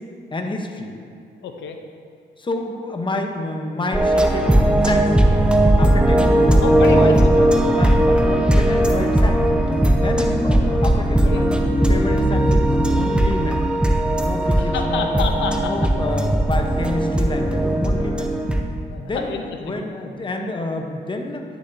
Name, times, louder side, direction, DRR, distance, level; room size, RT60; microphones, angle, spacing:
voice 1, 0.3-0.9 2.4-5.2 5.8-6.2 6.9-9.4 10.0-11.5 11.9-13.6 14.2-15.2 15.6-18.3 19.0-21.4, left 2 dB, 25° left, 3 dB, 0.9 m, -28 dB
voice 2, 1.4-1.8 6.6-7.3 11.2-11.5 14.6-15.7 18.9-19.8, left 6 dB, 85° left, 4 dB, 0.7 m, -29 dB
sound 1, 3.9-18.6, right 1 dB, 5° right, 0.7 m, -17 dB
10.0 x 7.1 x 2.7 m, 2.4 s
cardioid pair, 80°, 18 cm